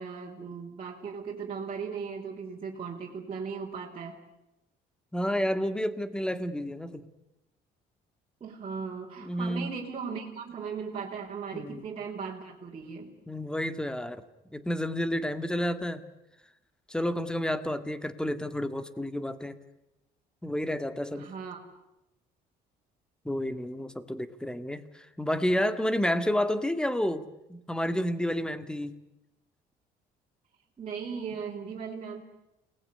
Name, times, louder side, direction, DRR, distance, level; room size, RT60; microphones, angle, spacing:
voice 1, 0.0-4.2 8.4-13.2 21.1-21.7 30.8-32.2, right 6 dB, 35° right, -3 dB, 4.5 m, -37 dB
voice 2, 5.1-7.1 9.2-9.7 11.5-11.8 13.3-14.2 14.5-16.0 16.9-19.5 20.4-21.3 23.3-29.0, equal, 5° left, 11 dB, 1.9 m, -30 dB
29.0 x 20.0 x 9.7 m, 0.94 s
cardioid pair, 110°, 17 cm